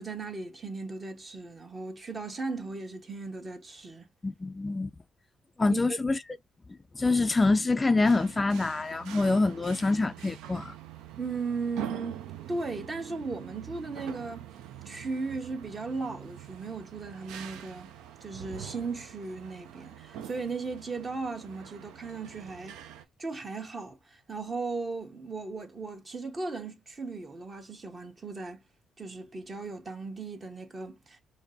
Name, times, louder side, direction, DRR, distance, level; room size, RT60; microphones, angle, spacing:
voice 1, 0.0-4.1 5.7-6.0 11.2-12.2 12.5-14.4 14.8-17.9 18.2-22.8 23.2-28.6 29.0-31.2, right 4 dB, 35° right, 1.1 m, -37 dB
voice 2, 4.2-4.9 5.6-6.2 6.9-10.7, left 3 dB, 25° left, 0.3 m, -25 dB
sound 1, 8.0-23.0, right 10 dB, 80° right, 0.4 m, -45 dB
5.0 x 2.0 x 2.6 m
hypercardioid pair, 55°, 0 cm